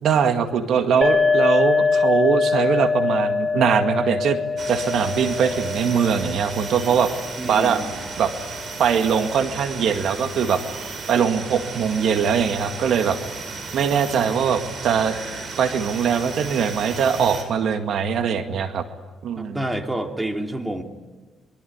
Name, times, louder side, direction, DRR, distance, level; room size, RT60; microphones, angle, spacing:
voice 1, 0.0-4.4 4.7-7.1 7.5-7.8 8.2-8.3 8.8-10.6 11.1-13.2 13.7-15.1 15.6-18.8 19.2-19.6, right 7 dB, 70° right, 7 dB, 2.0 m, -21 dB
sound 1, 1.0-8.5, left 4 dB, 30° left, 3.9 m, -23 dB
sound 2, 4.6-17.4, right 4 dB, 50° right, 6.8 m, -35 dB
voice 2, 7.4-8.0 19.4-20.8, right 1 dB, 10° right, 4 dB, 3.1 m, -28 dB
26.0 x 23.5 x 9.6 m, 1.3 s
cardioid pair, 90°, 0 cm